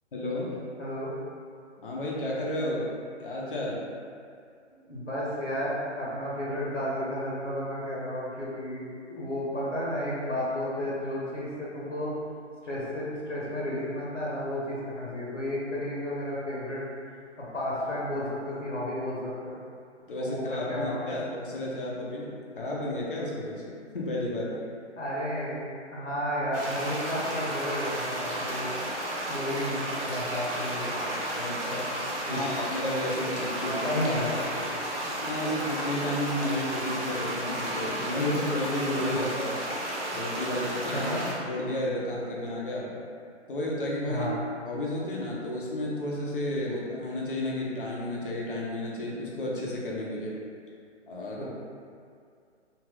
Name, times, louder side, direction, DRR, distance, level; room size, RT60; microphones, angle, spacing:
voice 1, 0.1-0.6 1.8-2.9 3.2-3.8 20.0-24.5 31.4-31.9 32.3-34.1 35.2-39.6 40.1-41.1 41.5-43.0 43.5-44.3 44.6-50.3 51.1-51.4, left 1 dB, 45° left, -4 dB, 0.7 m, -32 dB
voice 2, 0.8-1.1 4.9-12.1 12.6-16.8 17.4-19.6 20.2-21.2 25.0-28.8 29.3-31.0 32.3-32.4 33.6-34.4 39.1-39.2 40.9-41.2 44.1-44.4 51.3-51.4, left 1 dB, 85° left, -7 dB, 1.0 m, -32 dB
sound 1, 26.5-41.3, right 1 dB, 50° right, 0.8 m, -33 dB
2.9 x 2.4 x 3.1 m, 2.3 s
figure-of-eight pair, 135°, 36 cm